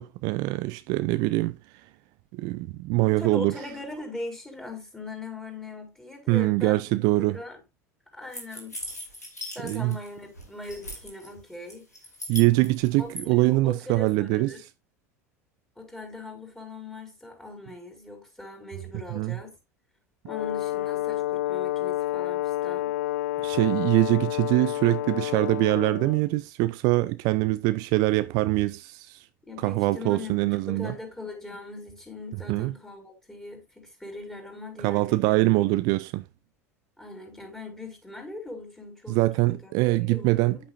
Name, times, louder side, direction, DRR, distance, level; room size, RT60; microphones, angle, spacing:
voice 1, 0.0-1.6 2.3-3.5 6.3-7.4 9.6-9.9 12.3-14.6 19.1-19.4 23.4-29.2 29.6-30.9 32.5-32.7 34.8-36.2 39.1-40.7, right 20 dB, 50° right, 0.5 m, -24 dB
voice 2, 3.0-6.8 7.2-7.6 8.1-8.7 9.5-11.8 13.0-14.6 15.8-19.6 20.2-22.9 29.4-35.3 37.0-39.2 39.5-40.7, left 2 dB, 5° left, 4.9 m, -40 dB
sound 1, 8.3-10.1 10.4-11.3 11.7-13.2, left 1 dB, 90° left, 2.9 m, -39 dB
Brass instrument, 20.3-26.3, left 15 dB, 65° left, 0.4 m, -29 dB
10.0 x 8.6 x 2.6 m
figure-of-eight pair, 75°, 8 cm